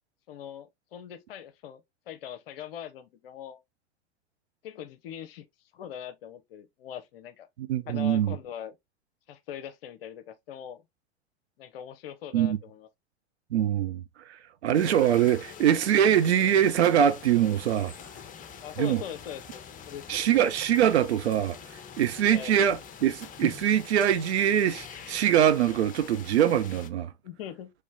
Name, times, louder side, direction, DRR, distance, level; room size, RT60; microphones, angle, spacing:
voice 1, 0.3-1.8 2.1-3.6 4.6-5.4 5.7-7.5 7.9-8.8 9.3-10.8 11.6-12.9 18.6-20.4 22.3-22.5 27.2-27.7, left 9 dB, 60° left, 0.6 m, -41 dB
voice 2, 7.6-8.4 12.3-12.6 13.5-14.0 14.6-17.9 18.8-19.0 20.1-21.6 22.0-27.1, right 10 dB, 75° right, 0.6 m, -23 dB
sound 1, 14.7-26.9, left 7 dB, 25° left, 0.8 m, -45 dB
3.2 x 3.1 x 3.4 m
figure-of-eight pair, 90°, 33 cm